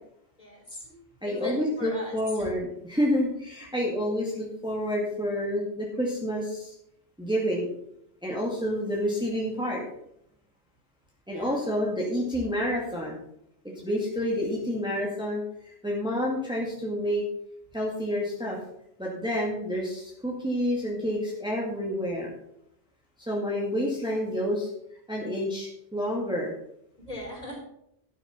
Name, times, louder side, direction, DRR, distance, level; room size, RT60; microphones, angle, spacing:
voice 1, 0.4-0.9 1.2-2.5 11.3-11.6 27.1-27.5, left 1 dB, 35° left, -2 dB, 4.6 m, -38 dB
voice 2, 1.2-6.7 7.2-7.7 8.2-9.8 11.3-13.2 13.8-17.2 17.7-18.6 19.0-22.3 23.2-24.7 25.1-26.5, equal, 5° right, -3 dB, 2.1 m, -29 dB
12.0 x 7.0 x 5.6 m, 0.77 s
omnidirectional pair, 1.2 m